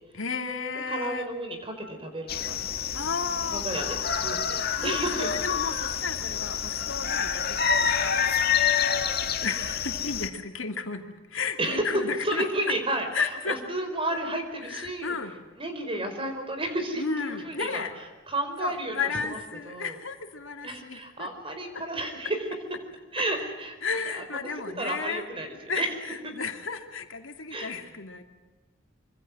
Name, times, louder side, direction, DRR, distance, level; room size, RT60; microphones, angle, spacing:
voice 1, 0.1-1.3 2.9-3.6 4.8-8.1 9.4-11.0 11.3-12.4 13.1-13.6 14.6-15.4 17.0-17.9 18.6-21.3 23.8-25.2 25.7-28.2, left 5 dB, 75° left, 5 dB, 2.6 m, -33 dB
voice 2, 0.9-2.6 3.5-5.3 11.6-11.9 12.2-15.2 15.6-19.4 19.6-20.0 20.6-22.5 23.1-23.8 24.1-24.2 24.8-25.9 26.2-26.3 27.5-27.7, right 1 dB, 25° right, 6 dB, 4.7 m, -32 dB
sound 1, 2.3-10.3, left 7 dB, 50° left, 1.8 m, -27 dB
25.5 x 25.0 x 6.3 m, 1.2 s
head